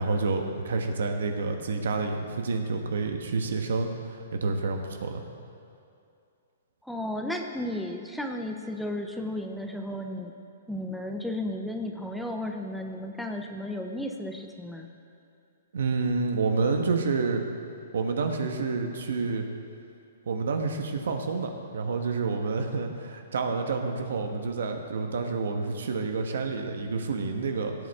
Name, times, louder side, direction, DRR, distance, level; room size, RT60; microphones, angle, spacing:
voice 1, 0.0-5.2 15.7-17.4 17.9-19.5 20.3-27.7, right 4 dB, 80° right, 5 dB, 1.3 m, -29 dB
voice 2, 6.8-10.3 10.7-14.9, left 1 dB, ahead, 3 dB, 0.6 m, -34 dB
17.0 x 8.3 x 3.6 m, 2.5 s
hypercardioid pair, 160°, 0 cm